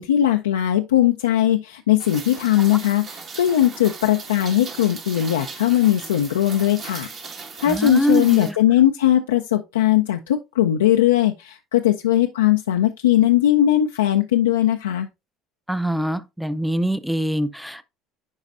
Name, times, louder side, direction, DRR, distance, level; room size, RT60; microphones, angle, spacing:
voice 1, 0.0-7.1 7.6-15.1, left 12 dB, 85° left, 0.4 m, -19 dB
Rain, 2.0-8.5, right 5 dB, 45° right, 1.5 m, -37 dB
voice 2, 7.7-8.5 15.7-17.8, equal, ahead, 0.6 m, -23 dB
10.5 x 4.0 x 2.4 m
hypercardioid pair, 65°, 0 cm